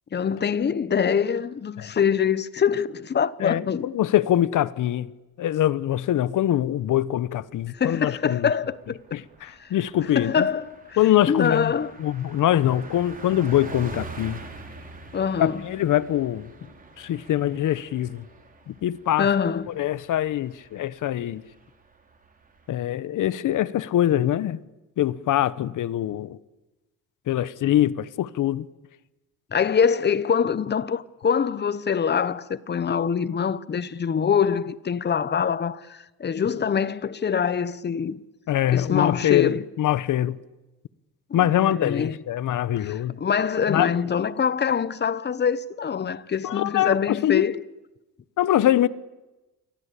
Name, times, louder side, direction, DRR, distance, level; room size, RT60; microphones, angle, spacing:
voice 1, 0.1-3.9 7.7-9.2 9.6-9.7 10.1-10.7 11.3-11.9 15.1-15.6 19.2-19.7 29.5-38.2 38.7-39.6 41.3-42.2 42.9-47.6, left 7 dB, 30° left, 1.0 m, -24 dB
voice 2, 3.4-5.1 5.4-8.5 9.1-10.5 11.0-11.7 12.0-14.4 15.4-16.5 17.0-18.2 18.7-19.3 19.8-21.4 22.7-24.6 25.0-26.4 27.3-28.6 38.5-40.4 41.3-43.2 43.7-43.9 46.4-47.5 48.4-48.9, left 12 dB, 60° left, 1.1 m, -23 dB
Car passing by, 7.0-7.7 8.0-8.2 8.4-22.7, right 3 dB, 25° right, 4.5 m, -45 dB
29.5 x 24.0 x 8.4 m
cardioid pair, 140°, 35 cm